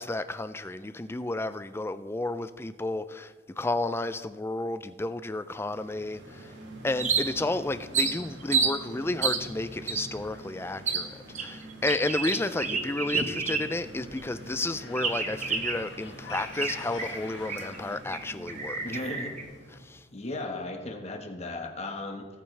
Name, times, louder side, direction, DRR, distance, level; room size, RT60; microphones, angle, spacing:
voice 1, 0.0-6.5 6.8-18.8 19.8-20.0, left 2 dB, 15° left, 0.4 m, -32 dB
sound 1, 5.4-20.0, right 1 dB, 90° right, 2.4 m, -46 dB
sound 2, 7.0-7.5 7.9-8.7 9.2-9.4 9.9-10.0 10.9-11.0 11.3-13.9 14.2-14.3 14.9-15.9 16.3-17.8 18.1-18.2 18.5-19.4, right 5 dB, 40° right, 1.2 m, -29 dB
sound 3, 13.3-18.0, left 4 dB, 75° left, 1.2 m, -47 dB
voice 2, 18.8-19.3 20.1-22.3, left 2 dB, 35° left, 1.3 m, -36 dB
19.5 x 8.9 x 3.3 m
head